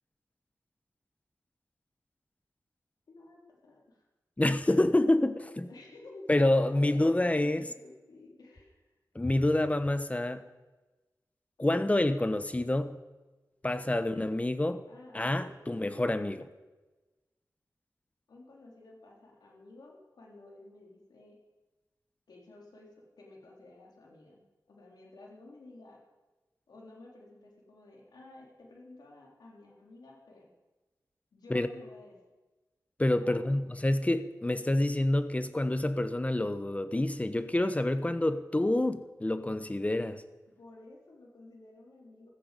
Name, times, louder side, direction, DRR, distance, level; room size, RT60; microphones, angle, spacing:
voice 1, 3.1-4.0 5.7-8.8 13.9-14.3 14.9-15.8 18.3-21.4 22.3-24.4 24.7-26.0 26.7-30.5 31.3-32.2 33.2-33.4 40.6-42.3, left 2 dB, 90° left, 3.9 m, -52 dB
voice 2, 4.4-5.7 6.3-7.6 9.1-10.4 11.6-13.0 13.6-14.8 15.1-16.5 31.5-31.7 33.0-40.2, left 1 dB, 20° left, 1.0 m, -27 dB
15.5 x 14.5 x 5.3 m
wide cardioid pair, 65°, 7 cm